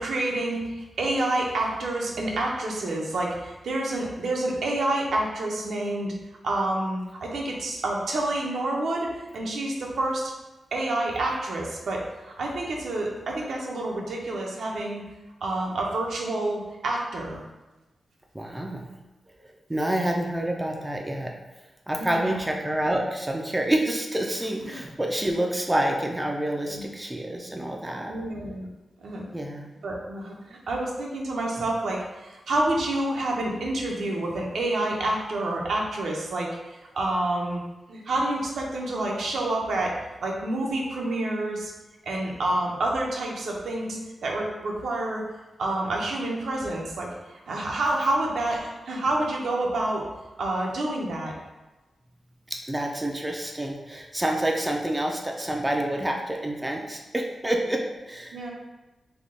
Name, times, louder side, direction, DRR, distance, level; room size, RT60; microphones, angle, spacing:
voice 1, 0.0-6.1 6.4-10.3 10.7-15.0 15.4-17.4 22.0-22.4 24.6-24.8 26.7-26.9 28.1-28.7 29.0-29.2 29.8-37.6 37.9-39.9 40.2-41.7 42.0-45.2 45.6-50.1 50.4-51.4 58.3-58.5, right 2 dB, 80° right, -1 dB, 0.7 m, -28 dB
voice 2, 18.3-18.9 19.4-21.3 21.9-28.1 29.3-29.7 52.5-58.5, right 1 dB, 10° right, 1 dB, 0.3 m, -28 dB
3.5 x 2.2 x 3.7 m, 1.1 s
wide cardioid pair, 145°, 0 cm